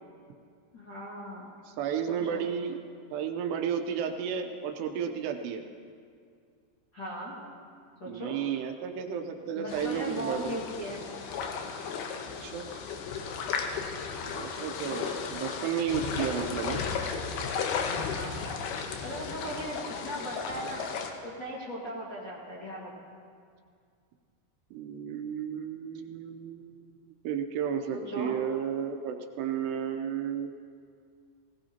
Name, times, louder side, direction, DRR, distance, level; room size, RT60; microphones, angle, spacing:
voice 1, 0.7-1.5 2.1-2.4 6.9-7.4 8.0-8.4 9.6-11.0 18.1-18.3 19.0-20.8 21.2-23.2 27.9-28.4, equal, 35° left, -8 dB, 1.9 m, -38 dB
voice 2, 1.8-2.8 3.1-5.6 8.1-10.6 12.4-12.7 14.3-16.8 24.7-30.5, right 8 dB, 80° right, 5 dB, 2.8 m, -33 dB
sound 1, 9.7-21.1, left 6 dB, 75° left, 2.8 m, -35 dB
20.0 x 17.5 x 2.9 m, 2.2 s
omnidirectional pair, 4.9 m